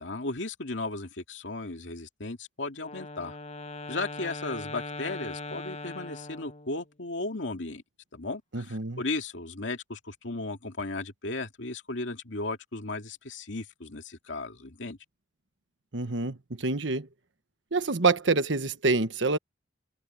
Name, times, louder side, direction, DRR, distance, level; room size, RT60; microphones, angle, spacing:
voice 1, 0.0-3.4 3.9-7.8 8.1-15.0, left 2 dB, 85° left, 2.4 m, -35 dB
Wind instrument woodwind instrument, 2.8-6.9, left 2 dB, 35° left, 1.5 m, -40 dB
voice 2, 8.5-9.0 15.9-17.1 17.7-19.4, right 3 dB, 80° right, 1.4 m, -26 dB
head